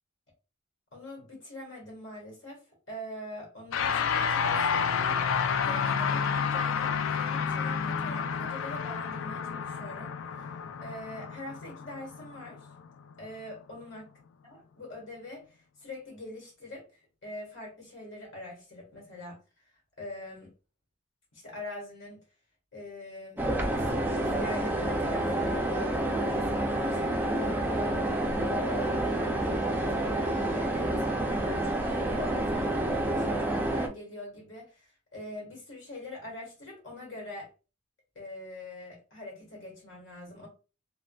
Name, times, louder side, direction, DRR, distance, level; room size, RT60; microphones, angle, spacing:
voice 1, 0.9-2.6 2.9-10.5 10.8-12.7 13.2-19.4 20.0-20.5 21.3-22.2 22.7-23.4 23.7-37.5 38.1-40.5, left 1 dB, 70° left, -1 dB, 1.5 m, -43 dB
sound 1, 3.7-13.2, left 6 dB, 90° left, 0.4 m, -30 dB
sound 2, 23.4-33.9, right 1 dB, 10° right, 0.4 m, -28 dB
3.5 x 2.2 x 2.2 m, 0.34 s
head